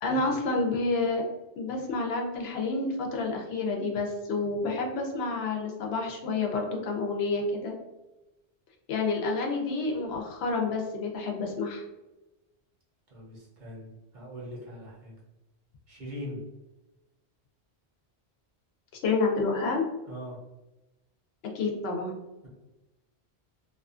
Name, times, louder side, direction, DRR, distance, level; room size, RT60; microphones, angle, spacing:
voice 1, 0.0-1.2 1.5-7.7 8.9-11.8 19.0-19.8 21.5-22.1, left 3 dB, 75° left, 1 dB, 0.8 m, -29 dB
voice 2, 13.1-15.1 15.9-16.4 20.1-20.4, equal, 50° right, -4 dB, 0.8 m, -41 dB
2.6 x 2.3 x 2.4 m, 1.0 s
omnidirectional pair, 1.1 m